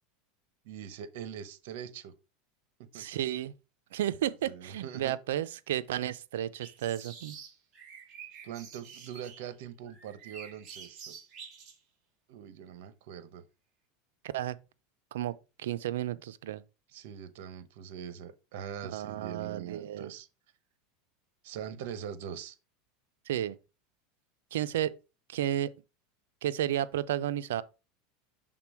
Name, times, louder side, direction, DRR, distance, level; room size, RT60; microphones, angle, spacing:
voice 1, 0.6-2.1 2.9-3.1 4.4-5.1 8.4-11.2 12.3-13.4 16.9-20.3 21.4-22.6, right 9 dB, 70° right, 0.9 m, -42 dB
voice 2, 2.9-3.5 3.9-7.4 14.3-14.6 15.1-16.6 18.9-20.1 23.3-23.6 24.5-25.0 25.3-25.7 26.4-27.6, right 12 dB, 85° right, 0.5 m, -32 dB
sound 1, 6.6-9.5 9.9-11.8, right 6 dB, 35° right, 2.6 m, -48 dB
6.0 x 3.7 x 4.8 m
supercardioid pair, 125°, 0 cm